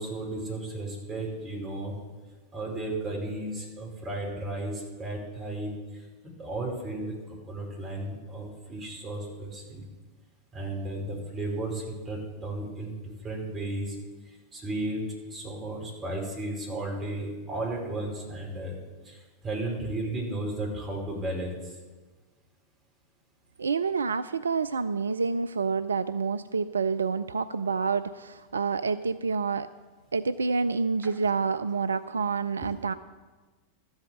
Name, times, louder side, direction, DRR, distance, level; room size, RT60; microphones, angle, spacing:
voice 1, 0.0-1.9 2.5-6.0 6.4-9.8 10.5-12.9 13.2-13.9 14.5-15.0 15.3-18.7 19.0-21.7, right 2 dB, 25° right, -2 dB, 5.0 m, -34 dB
voice 2, 23.6-29.7 30.1-32.9, right 5 dB, 70° right, 13 dB, 0.3 m, -28 dB
13.5 x 8.0 x 7.7 m, 1.3 s
figure-of-eight pair, 90°, 0 cm